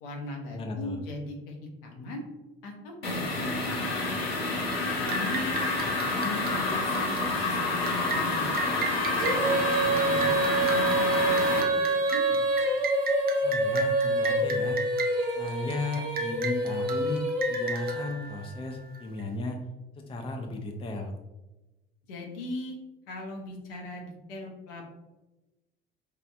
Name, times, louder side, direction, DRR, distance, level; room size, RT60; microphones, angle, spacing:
voice 1, 0.0-1.6 1.8-2.2 2.6-3.8 5.0-5.6 6.1-8.8 9.4-10.3 10.6-11.7 11.9-12.4 22.1-22.8 23.1-24.8, left 2 dB, 65° left, 0 dB, 0.8 m, -39 dB
voice 2, 0.5-1.0 13.4-14.8 15.4-19.6 19.9-21.1, left 2 dB, 20° left, 3 dB, 0.5 m, -35 dB
sound 1, 3.0-11.6, left 2 dB, 90° left, 0.5 m, -28 dB
sound 2, 5.1-19.2, right 3 dB, 30° right, 0.5 m, -37 dB
Female singing, 9.2-18.3, right 2 dB, 55° right, 0.9 m, -27 dB
4.7 x 2.5 x 2.4 m, 1.0 s
figure-of-eight pair, 55°, 29 cm